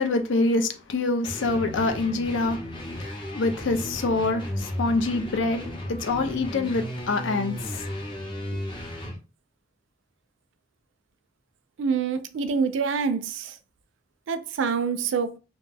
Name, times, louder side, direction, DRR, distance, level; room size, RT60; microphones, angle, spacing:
voice 1, 0.0-7.9 8.5-8.6, left 3 dB, 70° left, 0.5 m, -26 dB
sound 1, 1.2-9.2, equal, 25° left, 0.6 m, -34 dB
voice 2, 11.8-13.6 14.3-15.4, right 5 dB, 75° right, 0.4 m, -26 dB
2.5 x 2.2 x 3.3 m
head